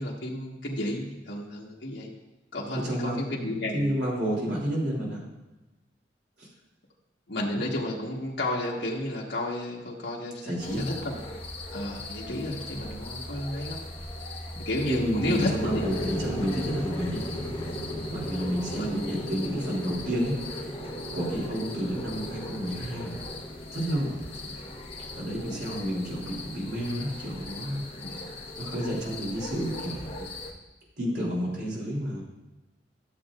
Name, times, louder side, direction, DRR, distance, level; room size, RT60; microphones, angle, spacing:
voice 1, 0.0-2.1 2.5-3.9 7.3-11.2 11.7-13.8 14.6-15.8 18.7-19.1 21.3-21.4 24.4-24.6 28.0-28.3, left 1 dB, 80° left, -3 dB, 1.5 m, -32 dB
voice 2, 2.7-5.3 6.4-6.5 10.5-10.9 14.8-17.2 18.1-20.4 21.1-23.1 23.7-24.2 25.1-27.9 28.6-30.3 31.0-32.2, equal, 65° right, -4 dB, 3.2 m, -30 dB
sound 1, 10.6-30.5, left 2 dB, 30° left, 1.3 m, -40 dB
sound 2, 15.7-30.2, equal, 15° left, 2.7 m, -38 dB
13.5 x 7.5 x 2.5 m, 1.1 s
head